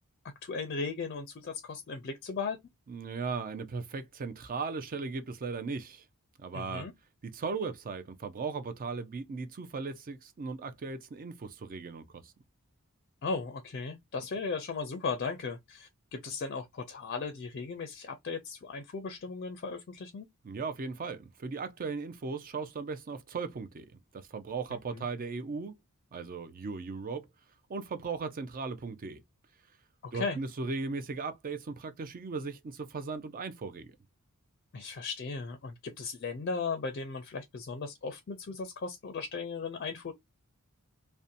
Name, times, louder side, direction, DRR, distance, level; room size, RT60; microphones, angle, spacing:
voice 1, 0.4-2.6 6.5-6.9 13.2-20.3 24.9-25.0 30.0-30.4 34.7-40.1, left 4 dB, 45° left, 0.4 m, -36 dB
voice 2, 2.9-6.1 6.4-6.9 7.2-12.3 20.4-25.7 26.1-27.3 27.7-29.2 30.1-34.0, right 4 dB, 40° right, 0.4 m, -37 dB
2.7 x 2.1 x 2.4 m
head